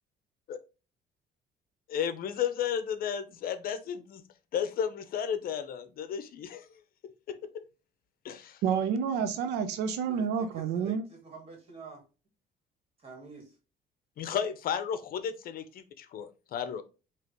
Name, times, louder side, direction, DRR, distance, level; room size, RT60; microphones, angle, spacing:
voice 1, 1.9-4.2 4.5-7.6 8.2-8.6 14.2-16.8, left 8 dB, 60° left, 0.7 m, -34 dB
voice 2, 8.6-11.0, right 7 dB, 85° right, 0.6 m, -29 dB
voice 3, 10.0-12.0 13.0-13.5, right 3 dB, 35° right, 2.4 m, -48 dB
5.0 x 3.0 x 3.0 m
cardioid pair, 110°, 17 cm